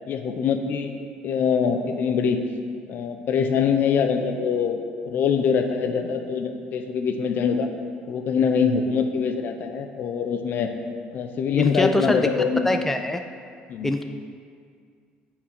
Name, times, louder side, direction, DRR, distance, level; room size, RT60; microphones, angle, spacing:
voice 1, 0.1-0.9 1.2-2.4 2.9-7.7 8.1-10.7 11.1-12.7 13.7-13.9, left 6 dB, 60° left, 6 dB, 0.8 m, -24 dB
voice 2, 11.6-12.3 12.6-13.2 13.8-14.0, left 1 dB, 10° left, 6 dB, 0.4 m, -23 dB
9.2 x 4.8 x 6.4 m, 2.2 s
supercardioid pair, 90°, 4 cm